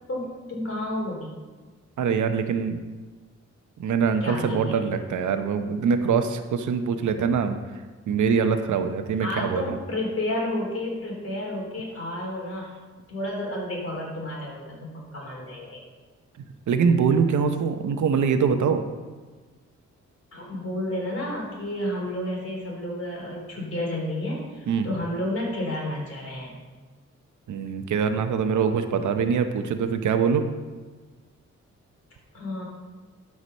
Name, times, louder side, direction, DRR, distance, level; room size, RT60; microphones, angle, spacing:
voice 1, 0.1-1.3 4.2-4.8 9.2-12.7 13.1-15.8 20.3-26.5 32.3-32.6, left 1 dB, 50° left, -2 dB, 3.5 m, -31 dB
voice 2, 2.0-2.8 3.8-7.6 8.1-9.7 16.7-18.8 24.7-24.9 27.5-30.4, right 6 dB, 90° right, 8 dB, 0.8 m, -23 dB
12.5 x 4.9 x 5.4 m, 1.4 s
wide cardioid pair, 105°, 29 cm